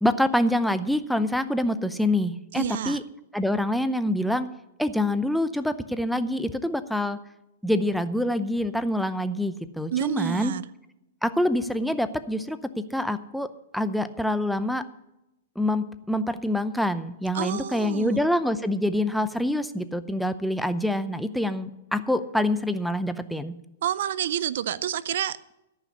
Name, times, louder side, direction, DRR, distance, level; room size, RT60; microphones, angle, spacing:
voice 1, 0.0-3.0 3.3-4.5 4.8-7.2 7.6-10.5 11.2-12.6 12.9-14.8 15.6-23.6, left 1 dB, ahead, 11 dB, 0.6 m, -26 dB
voice 2, 2.5-3.0 9.9-10.6 17.3-18.2 23.8-25.5, right 10 dB, 65° right, 18 dB, 0.5 m, -29 dB
14.0 x 5.8 x 9.4 m, 0.89 s
hypercardioid pair, 120°, 0 cm